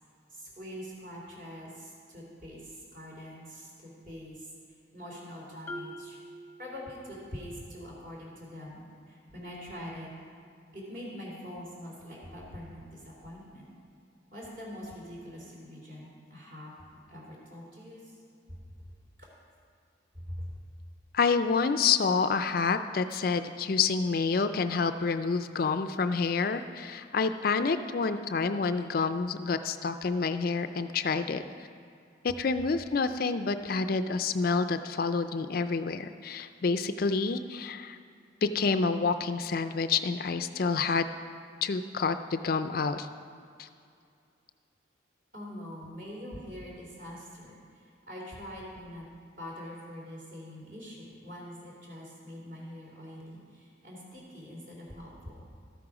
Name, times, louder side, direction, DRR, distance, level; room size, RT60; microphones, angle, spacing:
voice 1, 0.3-4.5 4.9-6.2 6.6-10.1 10.7-13.7 14.3-18.1 18.5-18.6 19.2-19.3 20.1-20.5 45.3-49.1 49.4-55.5, equal, 45° right, -3 dB, 3.0 m, -44 dB
Marimba xylophone, 5.7-7.4, equal, 15° left, 0.8 m, -44 dB
voice 2, 21.1-31.4 32.2-38.0 38.4-41.1 41.6-43.1 43.6-43.7, left 4 dB, 50° left, 10 dB, 0.4 m, -28 dB
13.0 x 8.8 x 4.8 m, 2.4 s
head